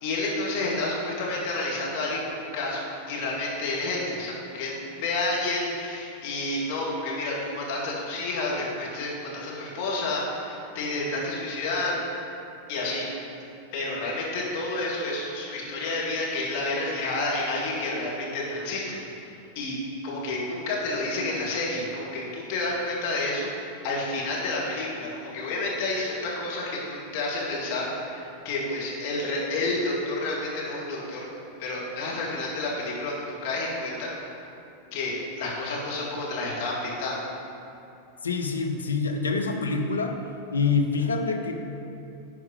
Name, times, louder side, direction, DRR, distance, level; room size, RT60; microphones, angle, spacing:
voice 1, 0.0-4.7 5.0-12.2 12.7-13.1 13.7-19.8 20.0-23.5 23.8-31.3 31.6-34.1 34.9-37.2, left 2 dB, 45° left, -5 dB, 2.2 m, -30 dB
voice 2, 38.2-40.2 40.5-41.5, left 4 dB, 75° left, 3 dB, 0.8 m, -26 dB
10.5 x 4.7 x 5.5 m, 2.7 s
figure-of-eight pair, 90°, 0 cm